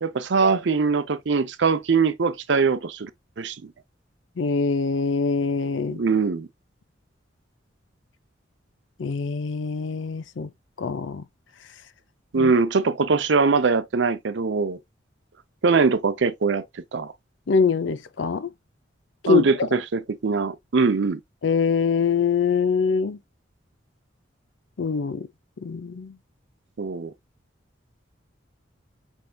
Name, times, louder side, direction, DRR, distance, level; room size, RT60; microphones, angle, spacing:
voice 1, 0.0-3.1 3.4-3.6 5.9-6.5 12.3-14.8 15.6-16.6 16.9-17.1 19.3-21.2 26.8-27.1, right 4 dB, 70° right, 0.5 m, -22 dB
voice 2, 4.4-6.0 9.0-10.5 10.8-11.2 12.3-12.5 17.5-18.5 19.2-19.4 21.4-23.2 24.8-25.3 25.6-26.2, left 5 dB, 75° left, 0.5 m, -24 dB
5.4 x 3.3 x 2.2 m
head